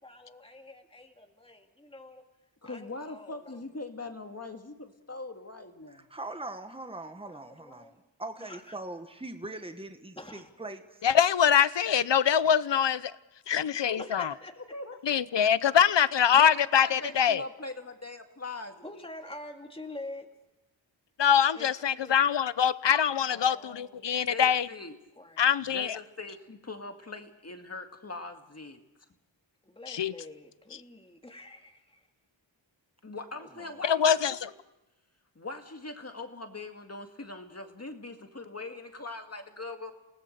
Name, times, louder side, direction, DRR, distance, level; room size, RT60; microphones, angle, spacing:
voice 1, 0.0-2.2 2.6-3.6 7.3-7.9 8.4-8.8 10.2-10.5 14.0-14.6 18.8-20.3 21.5-22.2 23.3-24.2 25.2-25.4 29.6-32.1, left 2 dB, 10° left, 3 dB, 2.1 m, -46 dB
voice 2, 2.6-6.1 13.9-14.1 14.7-15.0 16.3-19.1 24.3-25.0 25.6-28.8 33.0-34.4 35.4-39.9, left 2 dB, 35° left, 5 dB, 2.0 m, -41 dB
voice 3, 5.9-11.0 33.3-33.8, right 2 dB, 10° right, 7 dB, 1.5 m, -41 dB
voice 4, 11.0-13.1 13.5-14.3 15.0-17.4 21.2-24.7 25.4-26.0 29.9-30.1 33.8-34.5, left 8 dB, 65° left, 17 dB, 0.8 m, -24 dB
28.5 x 18.5 x 6.7 m, 1.0 s
wide cardioid pair, 85°, 46 cm